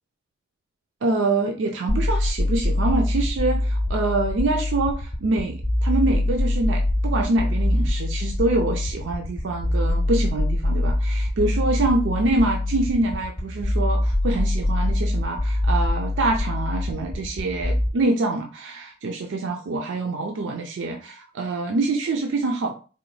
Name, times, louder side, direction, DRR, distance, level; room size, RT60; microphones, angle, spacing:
voice 1, 1.0-22.7, right 2 dB, 75° right, 3 dB, 0.4 m, -25 dB
sound 1, 1.9-17.9, left 1 dB, 20° left, 0.5 m, -24 dB
3.8 x 2.2 x 3.1 m, 0.36 s
head